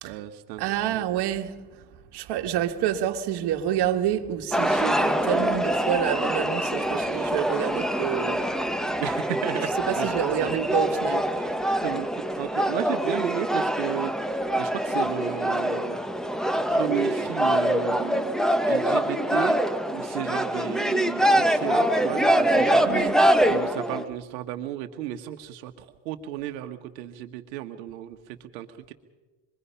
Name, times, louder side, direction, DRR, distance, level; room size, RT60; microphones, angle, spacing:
voice 1, 0.0-0.6 0.9-1.1 9.0-9.7 10.0-10.6 11.4-11.5 11.8-16.0 16.7-18.4 18.7-19.6 19.9-23.0 23.5-28.9, right 12 dB, 80° right, 1.3 m, -34 dB
voice 2, 0.6-1.8 2.1-8.4 9.9-11.3 22.8-23.2, right 10 dB, 50° right, 2.0 m, -28 dB
sound 1, 4.5-24.1, equal, ahead, 1.2 m, -24 dB
26.0 x 22.0 x 5.6 m
supercardioid pair, 105°, 50 cm